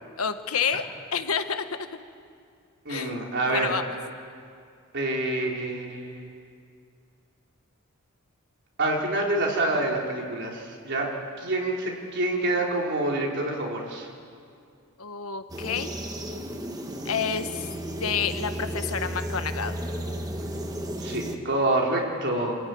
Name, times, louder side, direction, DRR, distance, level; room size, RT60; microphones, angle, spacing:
voice 1, 0.2-0.8 1.1-1.6 2.9-3.8 15.0-16.0 17.0-17.7 18.0-19.8, left 6 dB, 75° left, 8 dB, 1.4 m, -29 dB
voice 2, 2.8-3.7 4.9-6.3 8.8-11.1 11.4-14.1 21.0-22.6, right 2 dB, 55° right, -1 dB, 4.2 m, -27 dB
sound 1, 15.5-21.4, right 1 dB, 20° right, 1.5 m, -33 dB
27.5 x 15.0 x 9.6 m, 2.3 s
head